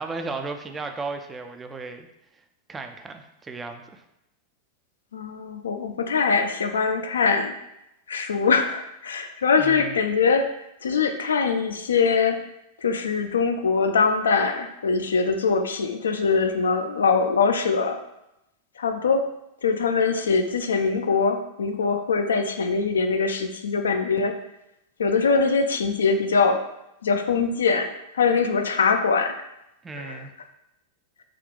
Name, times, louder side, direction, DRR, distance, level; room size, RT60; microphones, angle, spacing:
voice 1, 0.0-2.1 2.7-4.0 9.6-9.9 29.8-30.3, right 3 dB, 15° right, 6 dB, 0.3 m, -35 dB
voice 2, 5.1-7.5 8.1-10.5 10.8-12.4 12.8-18.0 18.8-19.2 19.6-24.3 25.0-26.6 27.0-29.4 29.9-30.3, left 5 dB, 70° left, 6 dB, 0.3 m, -22 dB
3.7 x 2.3 x 3.6 m, 0.86 s
figure-of-eight pair, 90°, 0 cm